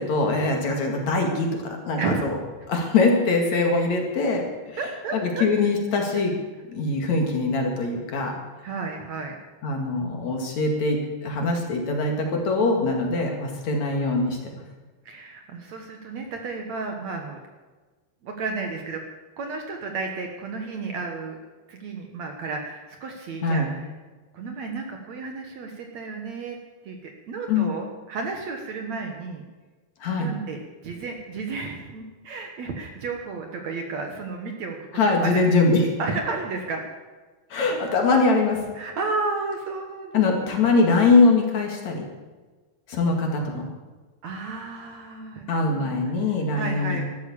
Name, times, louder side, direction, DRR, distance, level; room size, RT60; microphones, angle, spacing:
voice 1, 0.0-2.4 2.7-4.8 5.1-6.3 6.7-8.3 9.6-14.6 23.4-23.7 27.5-27.7 30.0-30.3 34.9-35.9 37.5-38.7 40.1-42.0 42.9-43.6 45.5-47.1, left 3 dB, 55° left, 2 dB, 3.1 m, -22 dB
voice 2, 4.8-5.5 8.6-9.4 15.1-17.4 18.2-19.0 19.4-21.4 21.7-23.9 24.3-26.6 26.9-29.4 30.2-34.9 35.2-35.5 36.0-36.9 38.8-40.6 44.2-45.9 46.5-47.1, right 4 dB, 60° right, 3 dB, 2.2 m, -32 dB
13.5 x 12.5 x 7.2 m, 1.3 s
omnidirectional pair, 4.3 m